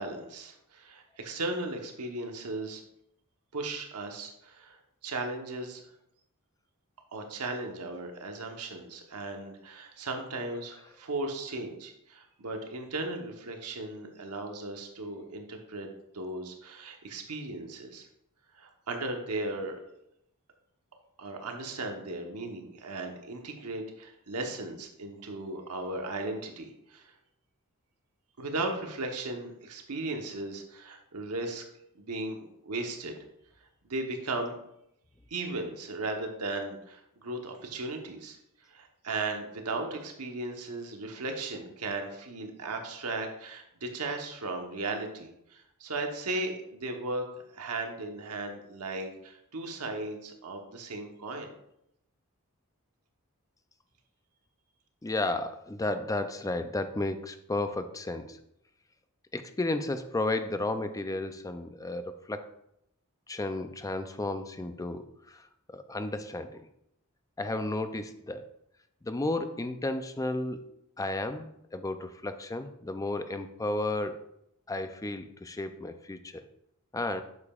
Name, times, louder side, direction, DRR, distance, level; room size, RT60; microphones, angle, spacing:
voice 1, 0.0-2.8 3.5-5.8 7.1-15.9 16.1-18.1 18.5-19.8 21.2-27.1 28.4-31.6 32.0-33.1 33.8-34.5 35.3-38.4 38.7-51.5, right 2 dB, 85° right, 3 dB, 1.1 m, -36 dB
voice 2, 55.0-58.4 59.3-62.5 63.3-66.7 67.4-68.5 69.0-70.6 71.0-74.2 74.7-76.4 76.9-77.2, left 2 dB, 15° left, 9 dB, 0.4 m, -33 dB
8.3 x 6.8 x 2.4 m, 0.78 s
head